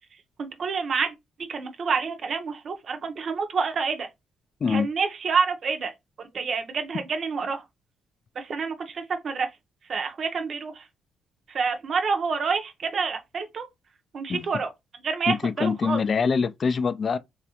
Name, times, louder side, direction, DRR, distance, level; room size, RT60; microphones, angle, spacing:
voice 1, 0.4-1.1 1.5-4.1 4.7-5.9 6.2-7.6 8.4-9.5 9.9-10.9 11.5-13.6 14.1-14.7 15.0-16.0, right 5 dB, 50° right, 0.6 m, -28 dB
voice 2, 15.3-17.2, left 5 dB, 45° left, 0.3 m, -24 dB
3.3 x 2.5 x 2.8 m
cardioid pair, 90°, 0 cm